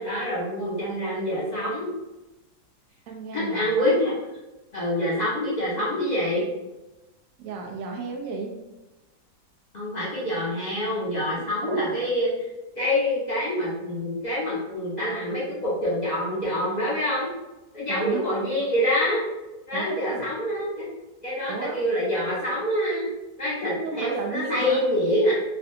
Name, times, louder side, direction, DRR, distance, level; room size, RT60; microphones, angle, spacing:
voice 1, 0.0-1.9 3.3-4.1 4.7-6.4 9.7-12.5 12.8-17.3 17.7-19.2 19.7-20.9 21.2-23.1 23.4-25.3, left 1 dB, 30° left, -8 dB, 0.9 m, -26 dB
voice 2, 3.1-4.0 7.4-8.5 11.6-11.9 17.9-18.3 19.7-20.3 21.5-21.8 23.8-24.9, right 4 dB, 70° right, 1 dB, 0.9 m, -33 dB
3.3 x 2.5 x 2.6 m, 1.0 s
omnidirectional pair, 1.8 m